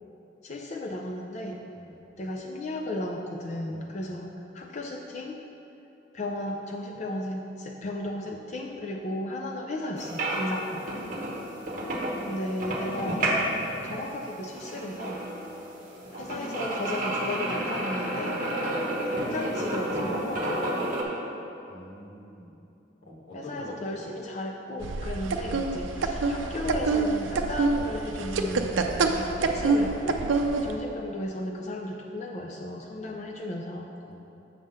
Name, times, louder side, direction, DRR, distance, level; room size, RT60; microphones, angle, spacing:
voice 1, 0.4-1.6 2.2-5.4 6.1-10.9 12.1-13.3 13.8-15.2 16.1-18.4 19.0-20.9 23.3-30.2 30.6-33.9, left 1 dB, 40° left, 0 dB, 0.4 m, -35 dB
voice 2, 3.7-4.0 21.7-22.6 23.0-24.1 30.4-30.6 32.9-33.2 34.0-34.2, left 1 dB, 75° left, -6 dB, 1.7 m, -46 dB
sound 1, 10.0-21.0, right 1 dB, 45° right, 0.9 m, -31 dB
sound 2, 24.8-30.8, right 3 dB, 85° right, 0.5 m, -27 dB
7.3 x 3.7 x 6.6 m, 2.8 s
head